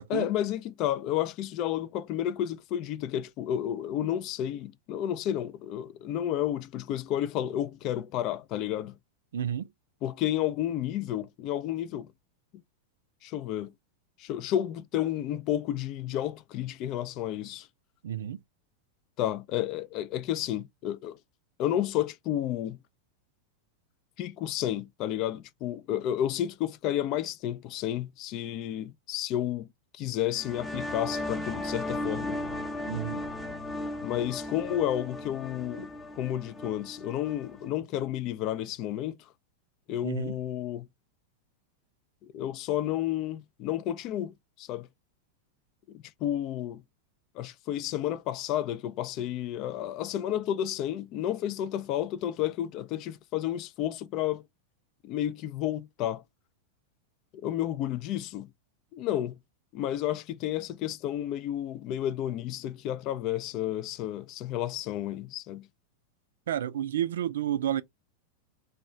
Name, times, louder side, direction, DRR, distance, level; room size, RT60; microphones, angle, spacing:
voice 1, 0.1-8.9 10.0-12.1 13.2-13.7 14.2-17.7 19.2-21.2 21.6-22.8 24.2-29.7 29.9-32.4 34.0-39.2 39.9-40.9 42.2-44.9 45.9-46.8 47.4-54.4 55.0-56.2 57.3-58.5 58.9-59.4 59.7-65.7, left 11 dB, 45° left, 0.3 m, -31 dB
voice 2, 9.3-9.7 18.0-18.4 32.9-33.2 40.0-40.4 66.5-67.8, right 10 dB, 75° right, 0.3 m, -31 dB
sound 1, 30.3-37.7, left 1 dB, 5° left, 0.6 m, -36 dB
2.3 x 2.1 x 3.7 m
hypercardioid pair, 100°, 0 cm